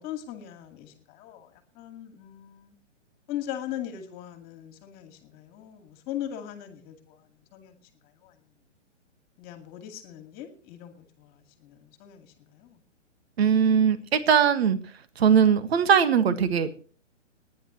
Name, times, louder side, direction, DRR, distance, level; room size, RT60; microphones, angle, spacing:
voice 1, 0.0-2.8 3.3-7.7 8.2-8.3 9.4-12.8, left 11 dB, 25° left, 2.3 m, -40 dB
voice 2, 13.4-14.8 15.2-16.7, right 7 dB, 55° right, 1.7 m, -20 dB
30.0 x 10.5 x 3.1 m
hypercardioid pair, 140°, 37 cm